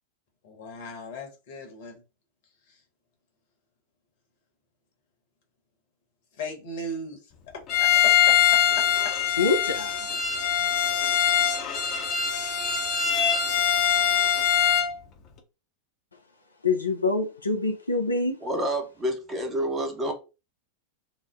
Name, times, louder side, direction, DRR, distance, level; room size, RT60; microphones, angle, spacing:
voice 1, 0.4-2.0 2.7-2.8 6.4-7.2 7.5-9.3 10.5-10.7, left 2 dB, 55° left, 1.1 m, -37 dB
Bowed string instrument, 7.7-14.9, left 9 dB, 35° left, 0.7 m, -23 dB
voice 2, 9.4-10.2 16.6-18.4, left 3 dB, 80° left, 0.4 m, -25 dB
voice 3, 18.4-20.1, right 1 dB, 20° right, 0.9 m, -28 dB
3.0 x 2.0 x 3.5 m
figure-of-eight pair, 90°, 0 cm